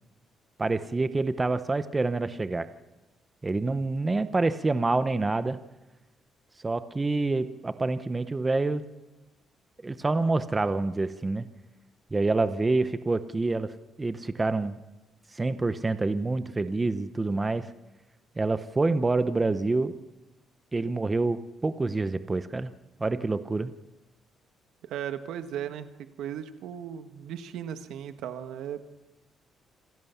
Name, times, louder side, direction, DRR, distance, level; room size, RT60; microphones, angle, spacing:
voice 1, 0.6-2.7 3.4-5.6 6.6-8.8 9.8-11.5 12.1-13.7 14.0-14.8 15.3-17.7 18.4-19.9 20.7-22.7 23.0-23.7, right 3 dB, 15° right, 12 dB, 0.9 m, -27 dB
voice 2, 24.8-25.9 26.2-28.8, right 9 dB, 90° right, 9 dB, 1.5 m, -36 dB
26.5 x 17.0 x 7.2 m, 1.0 s
cardioid pair, 145°, 0 cm